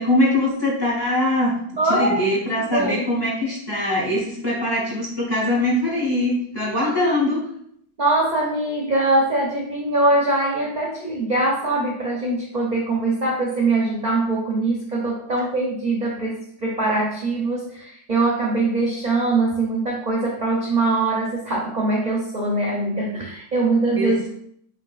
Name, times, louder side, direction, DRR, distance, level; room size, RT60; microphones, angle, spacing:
voice 1, 0.0-7.4 23.9-24.3, left 1 dB, 20° left, -4 dB, 0.9 m, -22 dB
voice 2, 1.8-2.2 2.7-3.0 6.8-7.1 8.0-24.3, right 2 dB, 50° right, -3 dB, 0.5 m, -22 dB
5.1 x 2.8 x 2.4 m, 0.68 s
omnidirectional pair, 1.6 m